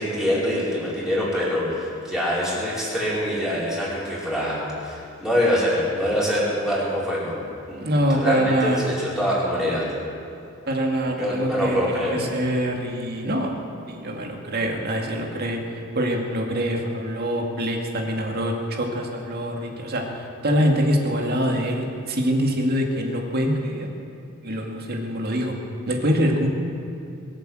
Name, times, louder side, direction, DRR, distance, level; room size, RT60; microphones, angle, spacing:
voice 1, 0.0-7.4 7.7-9.9 11.2-12.2, equal, ahead, -8 dB, 5.1 m, -25 dB
voice 2, 7.8-8.9 10.7-23.9 24.4-25.5 25.9-26.5, equal, 50° right, 1 dB, 2.2 m, -24 dB
22.5 x 8.3 x 7.7 m, 2.6 s
head